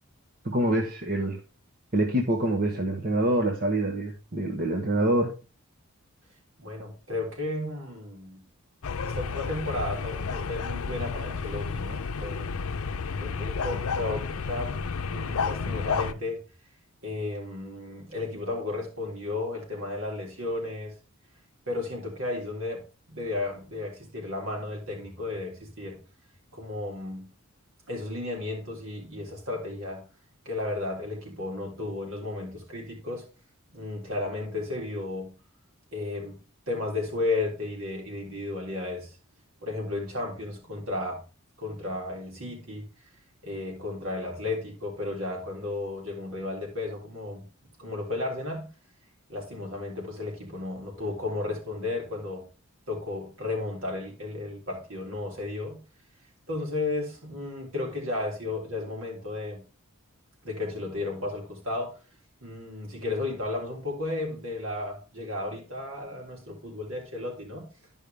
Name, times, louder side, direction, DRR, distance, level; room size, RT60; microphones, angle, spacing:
voice 1, 0.4-1.4 1.9-5.3, right 1 dB, 40° right, 2 dB, 1.1 m, -26 dB
voice 2, 6.6-8.4 9.0-12.5 13.2-16.4 17.0-20.9 21.7-26.0 26.5-27.3 27.9-30.0 30.5-33.3 33.7-35.3 35.9-36.4 36.7-39.2 39.6-41.2 41.6-42.9 43.4-47.5 47.8-48.7 49.3-52.4 52.9-55.8 56.5-59.6 60.4-62.0 62.4-67.7, left 2 dB, 65° right, 0 dB, 3.6 m, -33 dB
sound 1, 8.8-16.1, left 5 dB, 75° left, 0.6 m, -31 dB
12.0 x 5.5 x 3.5 m, 0.32 s
head